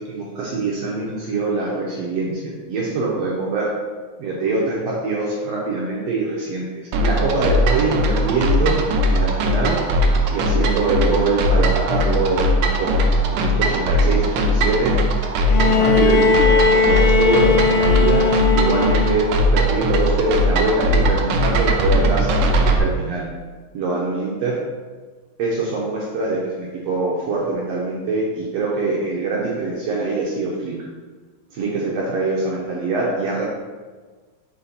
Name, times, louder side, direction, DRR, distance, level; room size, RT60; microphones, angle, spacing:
voice 1, 0.0-3.7 4.2-9.8 10.3-13.0 13.3-15.3 15.6-19.3 19.5-23.2 23.7-24.6 25.4-30.7 31.5-33.5, right 3 dB, 70° right, -4 dB, 1.7 m, -23 dB
sound 1, 6.9-22.8, equal, 90° right, 1.3 m, -19 dB
Bowed string instrument, 15.5-19.5 20.8-20.9, left 4 dB, 75° left, 1.8 m, -18 dB
5.9 x 4.2 x 4.0 m, 1.4 s
omnidirectional pair, 3.5 m